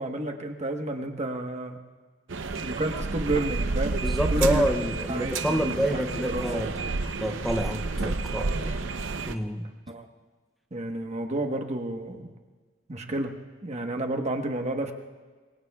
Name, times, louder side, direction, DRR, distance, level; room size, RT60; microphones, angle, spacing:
voice 1, 0.0-1.8 2.6-4.0 4.3-4.7 5.1-6.7 9.9-10.1 10.7-12.3 12.9-13.3 13.6-14.9, right 2 dB, 35° right, 4 dB, 1.2 m, -31 dB
sound 1, 2.3-9.4, right 3 dB, 80° right, 0.7 m, -30 dB
voice 2, 4.0-6.7 7.2-8.8 9.3-9.7, equal, ahead, 4 dB, 0.6 m, -28 dB
26.5 x 22.5 x 2.4 m, 1.4 s
head